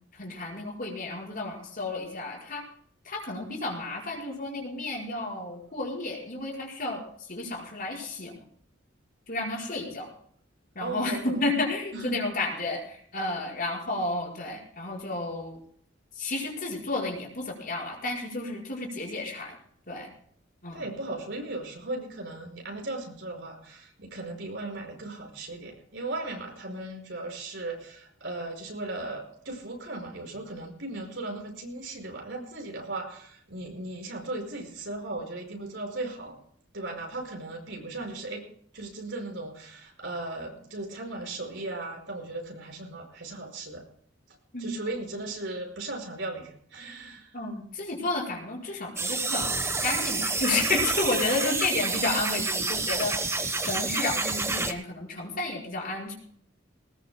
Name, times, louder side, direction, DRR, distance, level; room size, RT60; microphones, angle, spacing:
voice 1, 0.1-2.6 3.1-8.4 9.3-10.1 10.8-15.6 16.2-19.6 19.9-20.1 20.6-20.8 44.5-44.7 47.3-49.5 49.8-56.1, left 2 dB, 50° left, -2 dB, 5.3 m, -31 dB
voice 2, 10.8-11.4 11.9-12.2 20.7-36.4 36.7-38.4 38.7-43.8 44.6-47.3, right 2 dB, 70° right, 2 dB, 5.4 m, -37 dB
sound 1, 49.0-54.7, right 3 dB, 15° right, 1.1 m, -28 dB
20.0 x 20.0 x 2.2 m, 0.63 s
head